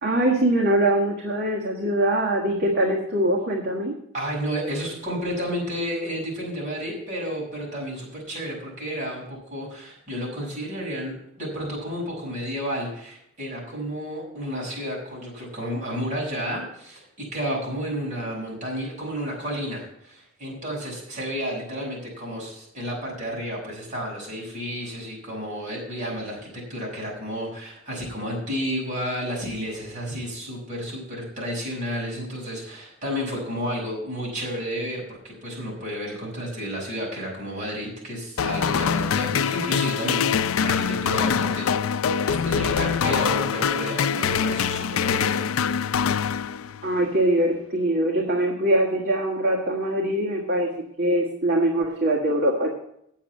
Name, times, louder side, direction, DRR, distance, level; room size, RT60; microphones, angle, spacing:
voice 1, 0.0-3.9 46.8-50.7 51.0-52.7, right 1 dB, 50° right, -1 dB, 1.7 m, -22 dB
voice 2, 4.1-41.9 42.3-45.5, equal, 35° right, -4 dB, 5.9 m, -31 dB
sound 1, 38.4-47.0, left 7 dB, 85° left, 0.4 m, -24 dB
9.0 x 7.4 x 8.3 m, 0.75 s
head